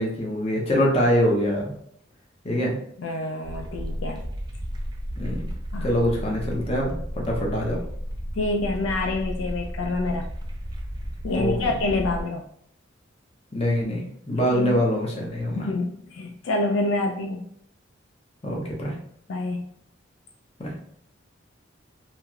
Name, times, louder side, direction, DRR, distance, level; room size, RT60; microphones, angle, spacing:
voice 1, 0.0-1.7 2.4-2.8 5.2-5.4 5.8-7.8 11.3-11.7 13.5-15.7 18.4-19.0 20.6-20.7, equal, 30° left, -2 dB, 0.7 m, -24 dB
voice 2, 3.0-4.3 5.7-5.9 8.3-10.3 11.2-12.4 14.3-14.8 15.6-17.5 19.3-19.7, left 2 dB, 75° left, 4 dB, 0.3 m, -27 dB
sound 1, 3.4-12.2, equal, 20° right, 0.4 m, -33 dB
2.9 x 2.8 x 2.4 m, 0.69 s
head